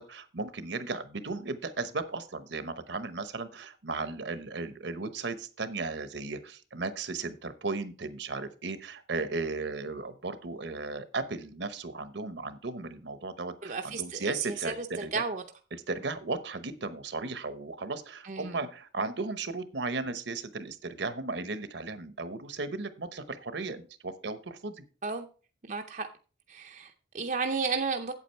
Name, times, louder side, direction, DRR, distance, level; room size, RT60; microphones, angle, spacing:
voice 1, 0.0-15.1 15.7-24.8, right 3 dB, 65° right, 12 dB, 0.9 m, -36 dB
voice 2, 13.6-15.4 18.2-18.7 25.0-25.3 25.7-26.1 26.5-28.1, right 4 dB, 40° right, 4 dB, 0.6 m, -33 dB
8.5 x 8.2 x 4.5 m, 0.38 s
head